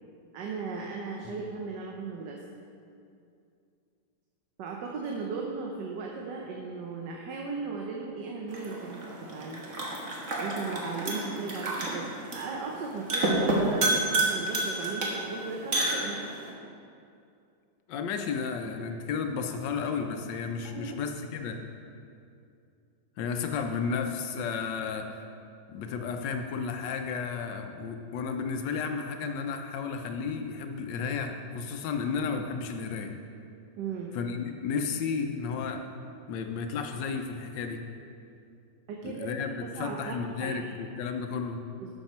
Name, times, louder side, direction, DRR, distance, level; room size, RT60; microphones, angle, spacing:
voice 1, 0.3-2.4 4.6-9.6 10.4-16.2 20.7-21.0 33.8-34.2 38.9-39.3 39.6-40.7 41.8-41.9, right 4 dB, 75° right, 0 dB, 1.4 m, -37 dB
sound 1, 8.5-16.5, right 2 dB, 45° right, 1.6 m, -30 dB
voice 2, 17.9-21.6 23.2-25.2 25.7-33.2 34.1-35.9 36.3-37.8 39.0-41.6, left 5 dB, 90° left, 5 dB, 1.4 m, -33 dB
11.5 x 6.3 x 4.3 m, 2.5 s
omnidirectional pair, 1.9 m